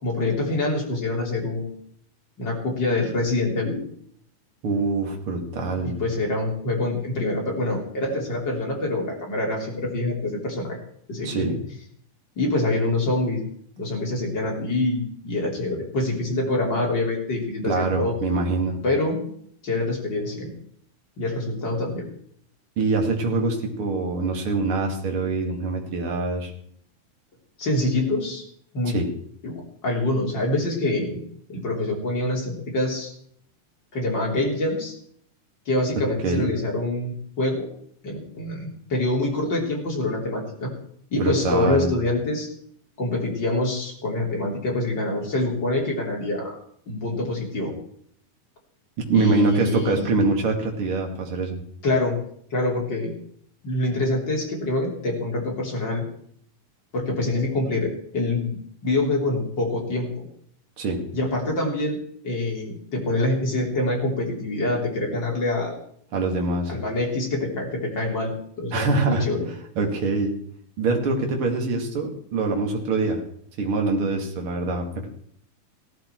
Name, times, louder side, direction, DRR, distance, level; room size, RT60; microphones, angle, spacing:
voice 1, 0.0-1.7 2.4-3.8 5.8-10.8 11.1-11.5 12.4-13.4 13.8-18.2 18.8-19.2 19.6-20.5 21.2-22.1 27.6-28.4 28.7-29.0 29.4-29.5 29.8-31.2 31.5-33.1 33.9-34.9 35.7-37.7 38.0-40.7 41.1-42.5 43.0-46.5 46.9-47.7 49.1-50.0 51.8-52.2 52.5-53.1 53.6-56.0 56.9-58.6 58.8-60.3 61.1-62.0 62.2-65.8 66.7-69.5, left 2 dB, 30° left, -1 dB, 3.7 m, -25 dB
voice 2, 4.6-5.9 11.2-11.6 17.6-18.8 22.8-26.5 28.9-29.1 36.2-36.5 41.2-41.9 49.0-51.6 60.8-61.0 66.1-66.7 68.7-69.2 69.8-70.3 70.8-73.2 73.6-75.1, right 3 dB, 40° right, 2 dB, 2.7 m, -24 dB
17.0 x 13.0 x 4.6 m, 0.64 s
omnidirectional pair, 4.3 m